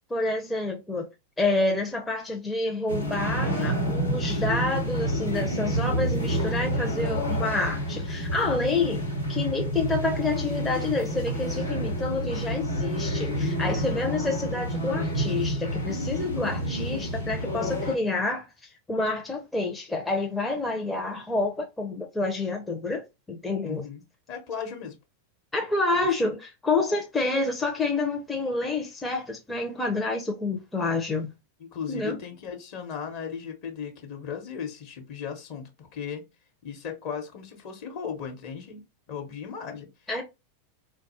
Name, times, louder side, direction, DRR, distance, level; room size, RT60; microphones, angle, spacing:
voice 1, 0.1-1.1 1.4-9.0 9.3-23.8 25.5-31.3 31.9-32.2 40.1-40.2, left 3 dB, 10° left, 0.6 m, -28 dB
sound 1, 2.9-18.0, equal, 90° left, 1.0 m, -29 dB
voice 2, 8.4-8.8 13.9-14.0 23.6-24.0 24.3-25.0 31.6-36.2 36.6-39.9, left 7 dB, 45° left, 1.0 m, -36 dB
3.9 x 2.3 x 2.8 m
figure-of-eight pair, 90°, 0 cm